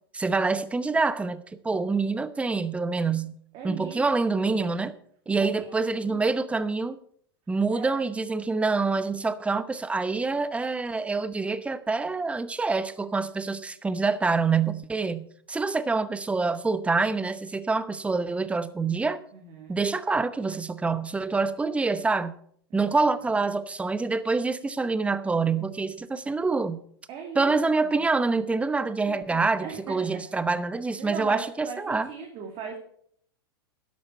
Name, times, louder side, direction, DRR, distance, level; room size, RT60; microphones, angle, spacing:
voice 1, 0.1-3.3 3.6-4.9 5.3-7.0 7.5-19.2 19.7-22.3 22.7-26.8 27.4-32.1, right 4 dB, 10° right, 0.8 m, -26 dB
voice 2, 3.5-4.0 4.4-4.7 5.3-6.5 7.7-8.0 19.3-19.8 22.7-22.9 27.1-27.5 27.8-28.0 29.1-30.2 30.9-32.8, right 6 dB, 40° right, 2.5 m, -40 dB
12.0 x 11.5 x 4.5 m
hypercardioid pair, 95°, 13 cm